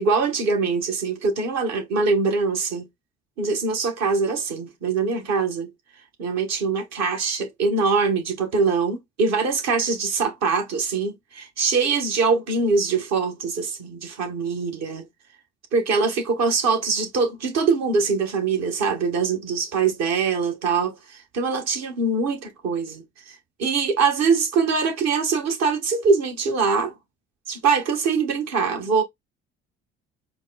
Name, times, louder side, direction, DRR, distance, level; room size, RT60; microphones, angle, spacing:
voice 1, 0.0-2.8 3.4-5.7 6.2-15.1 15.7-26.9 27.5-29.0, right 4 dB, 60° right, 1.7 m, -23 dB
4.5 x 2.4 x 4.1 m
hypercardioid pair, 60°, 30 cm